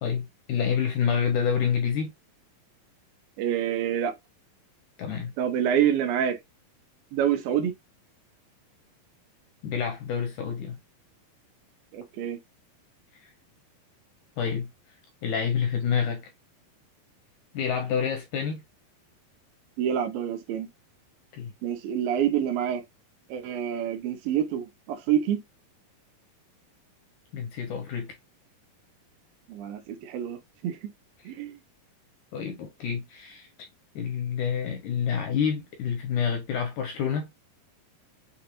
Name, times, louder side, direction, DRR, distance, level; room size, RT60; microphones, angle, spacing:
voice 1, 0.0-2.1 5.0-5.3 9.6-10.8 13.2-13.3 14.4-14.7 15.2-16.2 17.5-18.6 21.4-21.5 27.3-28.1 32.3-33.5 34.0-37.3, left 7 dB, 80° left, 1.8 m, -28 dB
voice 2, 3.4-4.1 5.4-6.4 7.1-7.7 11.9-12.4 19.8-20.7 21.6-22.8 23.3-25.4 29.5-30.4 30.6-30.8 31.3-31.6, right 9 dB, 80° right, 2.5 m, -27 dB
6.6 x 2.6 x 2.9 m
omnidirectional pair, 4.2 m